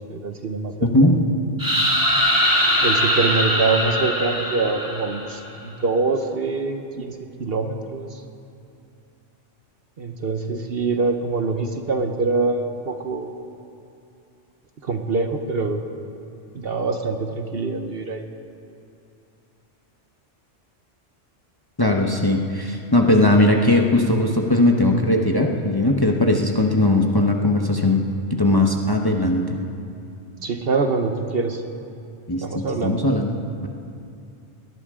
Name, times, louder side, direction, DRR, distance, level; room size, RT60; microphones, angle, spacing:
voice 1, 0.1-1.2 2.8-8.2 10.0-13.4 14.8-15.8 16.5-18.2 30.4-31.6 32.4-33.0, right 3 dB, 55° right, 6 dB, 1.1 m, -24 dB
voice 2, 0.8-1.2 21.8-28.0 28.3-29.4 32.3-33.3, left 1 dB, 20° left, 1 dB, 1.0 m, -19 dB
sound 1, 1.6-5.4, equal, 15° right, 2.0 m, -21 dB
20.5 x 19.0 x 3.7 m, 2.6 s
omnidirectional pair, 1.2 m